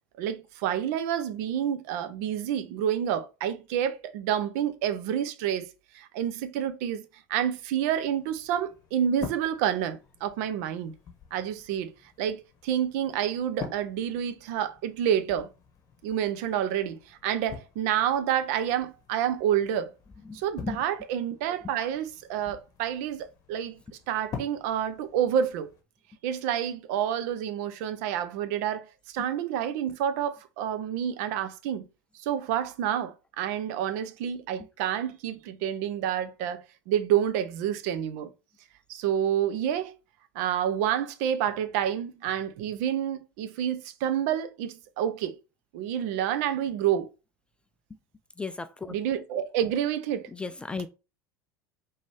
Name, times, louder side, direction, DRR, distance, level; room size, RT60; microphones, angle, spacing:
voice 1, 0.2-5.7 5.9-10.9 11.3-11.9 12.2-15.5 16.0-19.9 20.3-23.8 24.1-25.7 26.2-28.8 29.1-31.9 32.2-38.3 38.9-39.9 40.3-45.4 45.7-47.1 48.9-50.3, right 9 dB, 55° right, 0.6 m, -28 dB
sound 1, 7.8-25.8, left 6 dB, 35° left, 1.1 m, -47 dB
voice 2, 20.3-20.8 48.4-48.9 50.3-50.9, left 4 dB, 10° left, 0.4 m, -35 dB
5.1 x 2.8 x 3.3 m
figure-of-eight pair, 75°, 10 cm